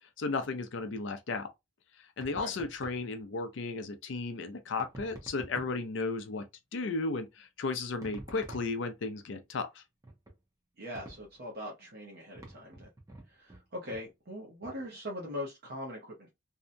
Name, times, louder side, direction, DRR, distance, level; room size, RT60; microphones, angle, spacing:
voice 1, 0.2-1.5 2.2-6.4 6.7-9.8, left 3 dB, 65° left, 0.5 m, -34 dB
sound 1, 2.2-3.1 4.8-5.9 8.0-9.1 10.0-10.4 10.9-11.3 12.3-13.6 13.9-14.1 14.6-14.8, right 1 dB, 15° right, 0.7 m, -48 dB
voice 2, 10.8-12.9 13.3-16.3, left 1 dB, 50° right, 0.7 m, -41 dB
2.7 x 2.2 x 2.5 m
head